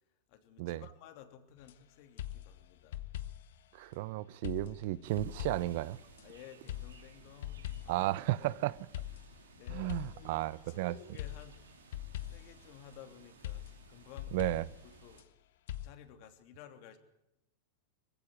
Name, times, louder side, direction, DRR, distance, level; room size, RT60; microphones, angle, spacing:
voice 1, 0.3-3.0 6.2-8.6 9.2-11.7 12.2-13.6 13.9-14.5 14.8-15.2 15.8-17.0, left 10 dB, 55° left, 3.0 m, -55 dB
sound 1, 1.6-1.8 2.2-3.6 4.4-6.3 6.7-8.2 8.9-10.8 11.2-12.7 13.4-15.3 15.7-15.9, left 12 dB, 70° left, 1.3 m, -43 dB
voice 2, 3.7-6.0 7.9-8.7 9.7-10.9 14.3-14.6, right 17 dB, 60° right, 0.7 m, -33 dB
sound 2, 5.0-15.2, right 6 dB, 90° right, 3.1 m, -59 dB
21.0 x 16.0 x 9.7 m
hypercardioid pair, 120°, 0 cm